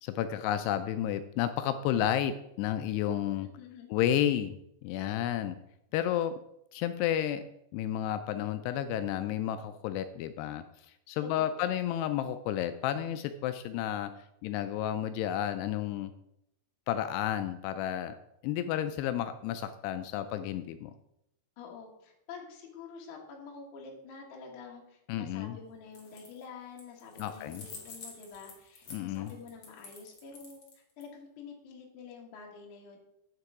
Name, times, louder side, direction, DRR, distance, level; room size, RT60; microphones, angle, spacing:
voice 1, 0.0-3.5 3.9-5.6 5.9-6.3 6.7-7.5 7.7-10.6 11.1-14.1 14.4-16.1 16.9-18.1 18.4-20.9 25.1-25.6 27.2-27.7 28.9-29.3, left 11 dB, 85° left, 10 dB, 2.4 m, -31 dB
voice 2, 3.4-3.9 11.2-11.8 21.6-33.0, left 5 dB, 60° left, -1 dB, 2.3 m, -48 dB
sound 1, 25.9-26.4 26.8-31.0, left 4 dB, 45° left, 2.1 m, -49 dB
9.1 x 6.7 x 4.7 m, 0.79 s
omnidirectional pair, 5.1 m